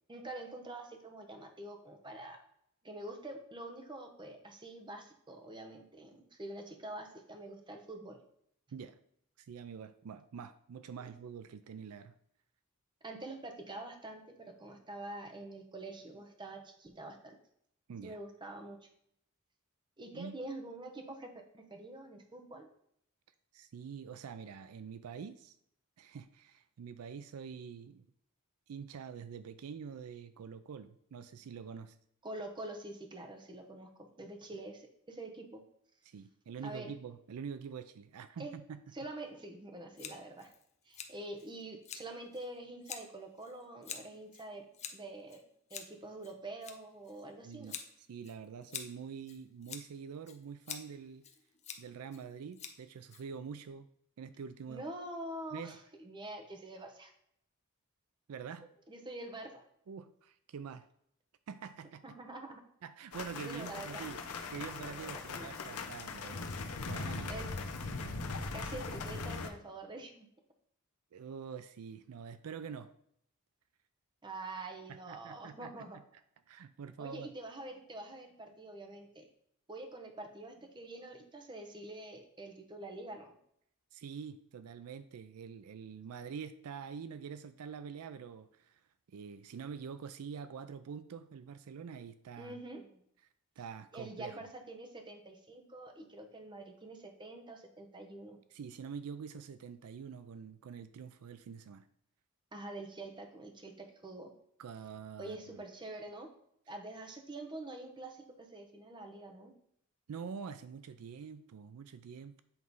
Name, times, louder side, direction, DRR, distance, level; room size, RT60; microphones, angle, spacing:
voice 1, 0.1-2.4 2.8-8.2 13.0-17.4 18.0-18.9 20.0-22.7 32.2-35.6 36.6-36.9 38.4-38.5 38.9-40.5 40.9-45.4 45.7-47.7 54.7-57.1 58.9-59.6 62.0-62.6 63.4-64.1 65.0-65.5 67.3-67.5 68.5-70.3 74.2-76.0 77.0-79.3 79.7-83.4 92.4-93.0 93.9-98.4 102.5-104.3 105.2-106.3 106.7-109.5, right 2 dB, 20° right, 4 dB, 0.9 m, -46 dB
voice 2, 9.4-12.1 17.9-18.2 20.1-20.3 23.5-25.6 26.0-28.1 28.7-32.0 36.0-38.8 47.4-51.2 51.8-53.9 54.2-54.8 55.5-55.8 58.3-58.6 59.9-60.9 61.5-62.2 62.8-64.2 64.5-66.5 66.8-67.4 71.1-72.9 74.9-76.0 76.5-77.3 83.9-88.8 89.1-92.6 93.6-94.4 98.5-101.9 104.6-105.6 110.1-112.4, right 6 dB, 75° right, 12 dB, 0.4 m, -46 dB
Scissors, 40.0-53.7, left 7 dB, 30° left, 0.6 m, -49 dB
sound 1, 63.1-69.5, left 3 dB, 90° left, 0.8 m, -40 dB
8.1 x 3.2 x 5.3 m, 0.70 s
head